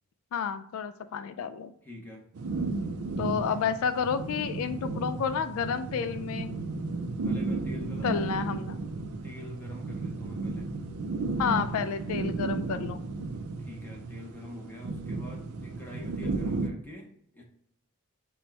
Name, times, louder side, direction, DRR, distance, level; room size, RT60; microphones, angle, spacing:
voice 1, 0.3-1.7 3.2-6.5 8.0-8.8 11.4-13.0 16.2-16.3, left 6 dB, 70° left, 11 dB, 0.3 m, -30 dB
voice 2, 1.8-2.3 7.2-8.4 9.2-10.8 13.6-17.4, left 2 dB, 10° left, -2 dB, 0.7 m, -46 dB
sound 1, 2.3-16.7, right 3 dB, 85° right, 0.5 m, -34 dB
4.2 x 2.2 x 4.4 m, 0.70 s
head